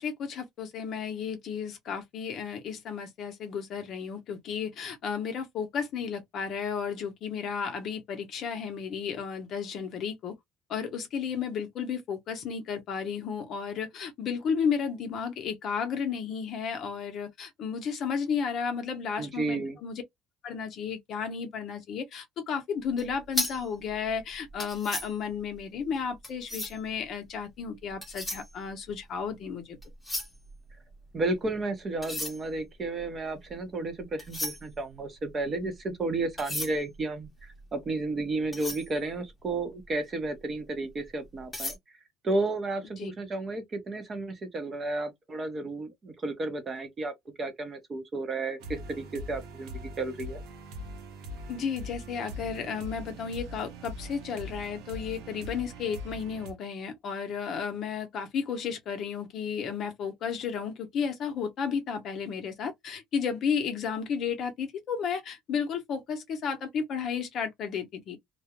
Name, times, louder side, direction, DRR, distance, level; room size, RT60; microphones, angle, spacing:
voice 1, 0.0-10.3 10.7-20.0 20.4-29.8 43.0-43.1 51.5-68.2, left 6 dB, 50° left, 0.7 m, -33 dB
voice 2, 19.2-19.8 31.1-41.7 42.2-47.1 47.4-50.4, right 2 dB, 30° right, 0.7 m, -32 dB
sound 1, 22.9-27.0 27.7-29.4 29.7-31.4 31.9-39.9 40.4-40.5 40.9-41.8, left 1 dB, 10° left, 0.9 m, -37 dB
sound 2, 48.6-56.5, equal, 80° right, 0.8 m, -42 dB
2.4 x 2.0 x 2.8 m
cardioid pair, 145°, 0 cm